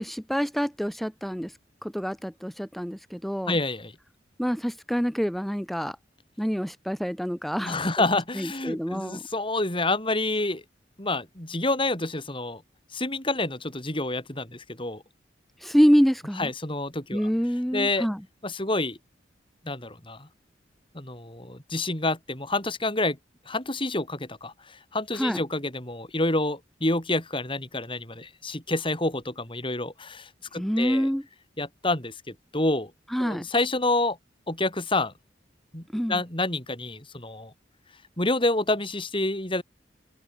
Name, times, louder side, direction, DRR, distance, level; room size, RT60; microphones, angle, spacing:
voice 1, 0.0-1.5 1.8-3.5 4.4-6.0 6.4-7.9 8.3-9.2 15.6-16.5 17.1-18.2 25.1-25.4 30.6-31.2 33.1-33.4 35.9-36.2, equal, ahead, 4.9 m, -26 dB
voice 2, 3.5-3.9 7.6-10.6 11.0-12.6 12.9-15.0 16.4-17.3 17.7-18.1 18.4-19.0 19.6-20.3 20.9-23.2 23.5-31.1 31.6-32.9 33.2-34.2 34.5-35.1 35.7-35.8 36.1-37.5 38.2-39.6, left 2 dB, 30° left, 6.6 m, -28 dB
head